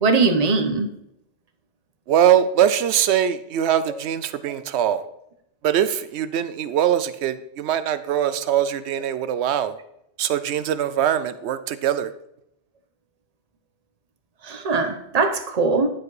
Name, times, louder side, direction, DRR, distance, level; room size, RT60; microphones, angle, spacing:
voice 1, 0.0-0.9 14.5-15.9, right 4 dB, 40° right, 7 dB, 0.9 m, -20 dB
voice 2, 2.1-5.0 5.6-9.8 10.2-12.1, right 10 dB, 75° right, 13 dB, 0.9 m, -22 dB
10.5 x 4.7 x 4.8 m, 0.79 s
omnidirectional pair, 1.2 m